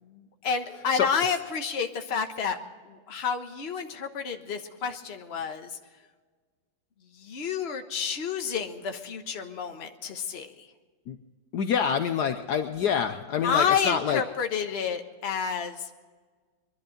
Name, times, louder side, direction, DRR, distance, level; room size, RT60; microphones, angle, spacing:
voice 1, 0.0-2.6 2.8-5.8 7.1-10.7 13.4-15.9, left 6 dB, 40° left, 5 dB, 1.2 m, -30 dB
voice 2, 11.5-14.2, left 7 dB, 65° left, 8 dB, 1.2 m, -26 dB
22.5 x 11.5 x 5.1 m, 1.4 s
omnidirectional pair, 2.0 m